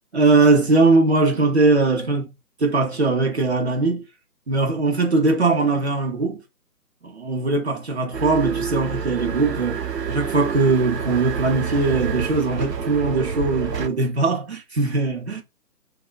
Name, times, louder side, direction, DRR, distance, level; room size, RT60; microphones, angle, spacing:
voice 1, 0.1-2.3 2.6-4.0 4.5-6.4 7.0-9.8 10.1-15.4, right 3 dB, 45° right, 0.5 m, -20 dB
sound 1, 8.1-13.9, right 6 dB, 85° right, 0.7 m, -28 dB
3.2 x 2.1 x 2.2 m
figure-of-eight pair, 150°, 48 cm